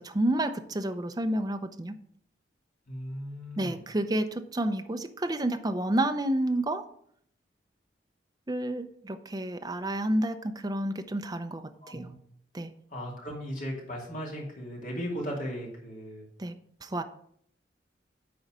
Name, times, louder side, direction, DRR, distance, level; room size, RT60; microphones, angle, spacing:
voice 1, 0.0-2.0 3.6-6.8 8.5-12.1 12.5-12.7 16.4-16.5 16.8-17.0, right 1 dB, 20° right, 7 dB, 0.6 m, -30 dB
voice 2, 2.9-3.8 11.8-12.1 12.9-16.2, equal, 50° left, -2 dB, 2.6 m, -37 dB
9.5 x 3.9 x 6.1 m, 0.67 s
head